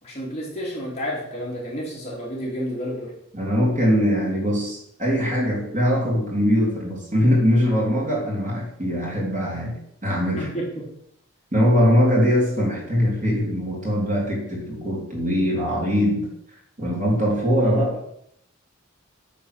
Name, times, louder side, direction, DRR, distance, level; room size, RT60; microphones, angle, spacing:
voice 1, 0.0-3.1 10.4-10.8, equal, 30° left, -4 dB, 2.9 m, -30 dB
voice 2, 3.3-10.5 11.5-16.3 16.8-18.0, equal, 40° right, -4 dB, 3.0 m, -21 dB
9.1 x 4.6 x 6.5 m, 0.73 s
head